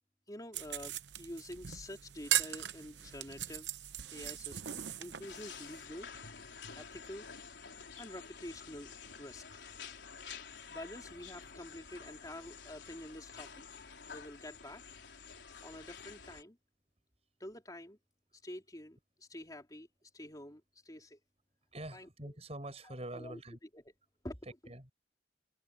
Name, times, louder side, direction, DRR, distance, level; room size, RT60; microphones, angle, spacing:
voice 1, 0.3-0.9 1.2-3.8 4.1-6.1 6.7-7.3 8.0-8.9 9.2-9.4 10.7-13.8 14.1-14.8 15.6-16.6 17.4-18.0 18.4-21.2 21.9-22.3 22.8-23.4 23.7-23.8 24.2-24.5, left 1 dB, 20° left, 3.5 m, -48 dB
sound 1, 0.5-5.8, right 11 dB, 75° right, 0.9 m, -39 dB
sound 2, 5.2-16.4, left 6 dB, 75° left, 4.2 m, -50 dB
voice 2, 21.7-23.6 24.4-24.9, right 1 dB, 35° right, 6.7 m, -45 dB
head